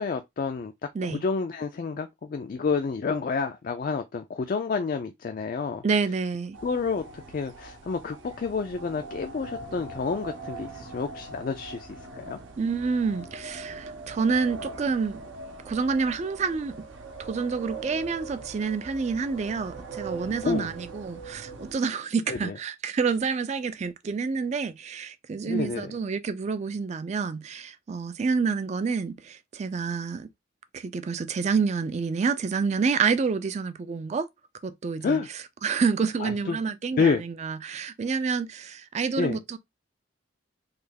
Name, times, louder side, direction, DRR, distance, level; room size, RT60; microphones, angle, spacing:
voice 1, 0.0-5.8 6.6-11.9 12.2-12.4 20.4-20.7 22.3-22.5 25.5-25.9 35.0-35.3 36.2-36.6 37.0-37.2 39.2-39.4, left 5 dB, 45° left, 0.3 m, -29 dB
voice 2, 5.8-6.6 12.6-15.2 15.7-16.9 17.2-30.3 30.7-34.3 34.6-39.6, right 5 dB, 35° right, 0.3 m, -28 dB
sound 1, 6.5-21.7, right 3 dB, 75° right, 0.7 m, -41 dB
3.2 x 2.3 x 3.4 m
head